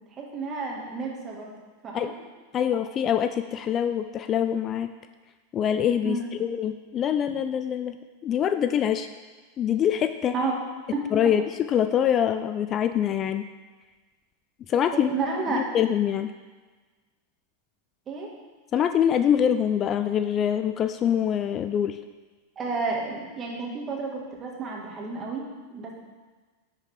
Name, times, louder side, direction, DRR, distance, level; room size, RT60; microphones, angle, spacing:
voice 1, 0.0-1.5 1.8-2.1 6.0-6.3 10.3-10.6 10.9-11.0 14.9-15.6 18.1-18.3 22.6-26.0, right 4 dB, 30° right, -2 dB, 2.1 m, -31 dB
voice 2, 2.5-4.9 5.5-7.9 8.2-9.1 9.6-10.3 11.1-11.4 11.7-13.5 14.7-15.1 15.5-16.3 18.7-22.0, left 9 dB, 35° left, 10 dB, 0.4 m, -24 dB
10.5 x 5.6 x 3.7 m, 1.3 s
hypercardioid pair, 95°, 0 cm